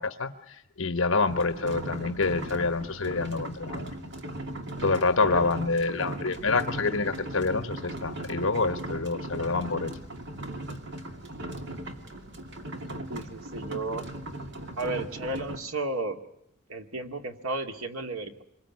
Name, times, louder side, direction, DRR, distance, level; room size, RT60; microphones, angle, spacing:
voice 1, 0.0-3.9 4.8-10.0, left 3 dB, 65° left, 10 dB, 1.2 m, -27 dB
sound 1, 1.2-15.6, right 1 dB, 55° right, 2.6 m, -38 dB
voice 2, 13.1-14.0 14.8-16.2 16.7-18.4, right 2 dB, 90° right, 6 dB, 2.2 m, -33 dB
25.5 x 21.5 x 9.5 m, 0.76 s
head